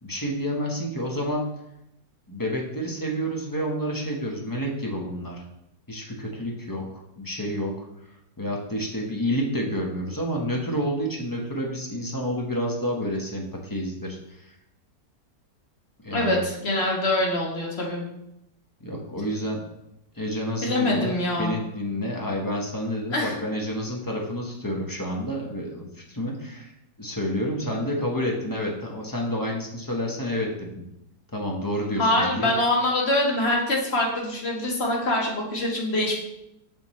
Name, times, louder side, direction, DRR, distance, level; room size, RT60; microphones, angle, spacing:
voice 1, 0.0-1.5 2.3-5.4 5.9-7.9 8.4-14.4 16.0-16.4 18.8-19.6 20.2-26.7 27.0-30.8 31.3-32.5, equal, 15° left, -1 dB, 0.8 m, -29 dB
voice 2, 16.1-18.0 20.6-21.6 23.1-23.3 32.0-36.2, left 1 dB, 40° left, -1 dB, 1.6 m, -24 dB
7.1 x 6.2 x 3.1 m, 0.85 s
omnidirectional pair, 1.8 m